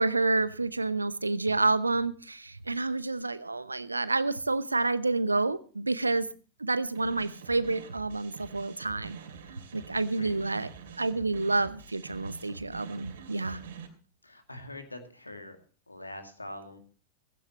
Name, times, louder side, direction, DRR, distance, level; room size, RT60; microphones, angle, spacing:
voice 1, 0.0-6.3 6.6-9.2 9.7-10.7 11.0-13.6, right 3 dB, 80° right, 17 dB, 0.8 m, -29 dB
sound 1, 6.9-13.9, right 6 dB, 60° right, 2.7 m, -47 dB
voice 2, 10.1-10.5 13.4-13.5 14.2-15.6 15.9-16.8, left 1 dB, 85° left, 6 dB, 2.3 m, -44 dB
16.5 x 15.5 x 3.0 m, 0.37 s
figure-of-eight pair, 90°, 0 cm